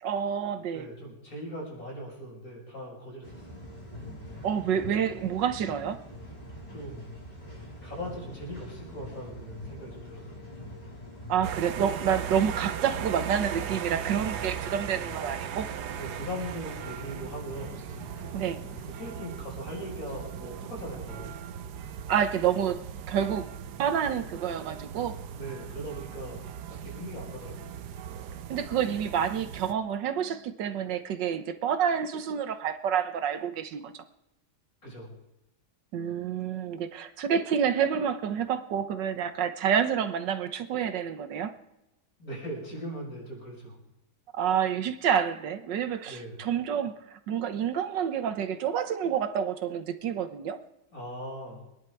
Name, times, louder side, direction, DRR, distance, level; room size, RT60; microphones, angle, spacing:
voice 1, 0.0-0.9 4.4-6.0 11.3-15.7 18.3-18.6 22.1-23.5 23.8-25.2 28.5-33.9 35.9-41.5 44.3-50.6, right 8 dB, 90° right, 1.7 m, -28 dB
voice 2, 0.7-3.4 6.7-7.2 7.8-10.5 16.0-17.9 18.8-21.3 25.3-26.4 26.7-27.7 34.8-35.1 42.2-43.8 46.0-46.4 50.9-51.6, equal, 55° left, 6.1 m, -40 dB
sound 1, 3.2-18.9, left 1 dB, 20° left, 3.4 m, -45 dB
sound 2, 11.4-29.7, right 9 dB, 70° right, 1.3 m, -38 dB
24.5 x 10.5 x 4.6 m
omnidirectional pair, 1.9 m